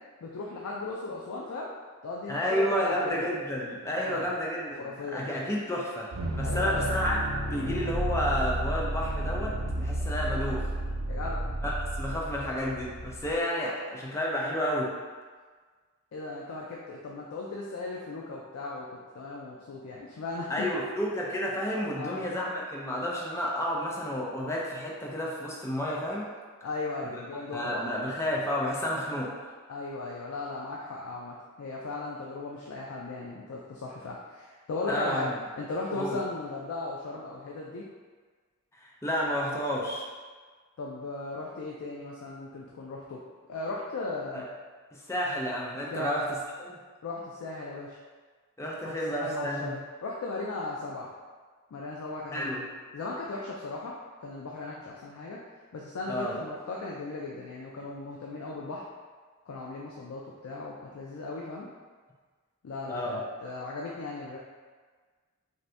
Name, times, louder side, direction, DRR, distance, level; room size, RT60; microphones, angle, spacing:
voice 1, 0.2-1.7 2.0-3.2 4.0-4.3 4.8-5.3 6.4-6.9 11.1-11.4 16.1-20.8 22.0-22.3 26.6-27.8 29.7-35.3 35.6-37.8 40.8-43.2 43.5-44.5 45.9-46.1 47.0-48.0 48.8-48.9 49.2-51.1 51.7-52.6 52.9-53.9 54.2-55.4 55.7-58.8 59.5-61.7 62.6-64.4, left 3 dB, 80° left, -3 dB, 0.4 m, -37 dB
voice 2, 2.3-10.7 11.6-14.9 20.5-26.3 27.0-27.2 27.5-29.3 34.9-35.3 35.9-36.2 38.8-40.1 44.3-44.5 44.9-46.8 48.6-49.7 52.3-52.6 56.1-56.4 62.9-63.2, equal, 15° left, -4 dB, 0.4 m, -31 dB
sound 1, 6.1-13.3, right 1 dB, 85° right, 0.5 m, -32 dB
2.7 x 2.6 x 3.2 m, 1.5 s
head